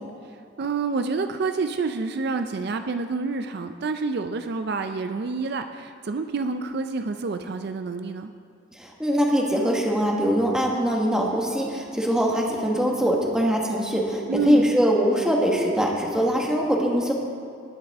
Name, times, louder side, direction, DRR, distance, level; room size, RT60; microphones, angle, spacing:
voice 1, 0.6-8.3 14.3-14.7, right 4 dB, 60° right, 8 dB, 0.4 m, -28 dB
voice 2, 8.8-17.1, equal, 5° right, -1 dB, 1.4 m, -22 dB
19.0 x 8.1 x 3.6 m, 2.5 s
head